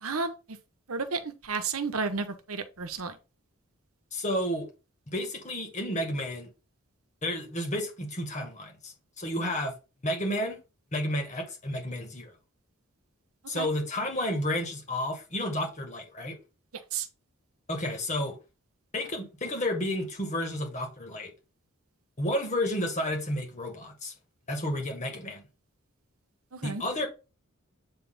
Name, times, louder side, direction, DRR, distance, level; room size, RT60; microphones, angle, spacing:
voice 1, 0.0-0.6 0.9-3.2 13.5-13.7 16.9-17.1 26.5-26.8, right 4 dB, 85° right, 1.0 m, -32 dB
voice 2, 4.1-4.7 5.1-6.5 7.2-9.7 10.0-10.6 10.9-12.3 13.5-16.4 17.7-18.4 18.9-21.3 22.2-24.1 24.5-25.4 26.6-27.1, left 1 dB, 35° left, 1.9 m, -31 dB
8.3 x 3.5 x 3.9 m
head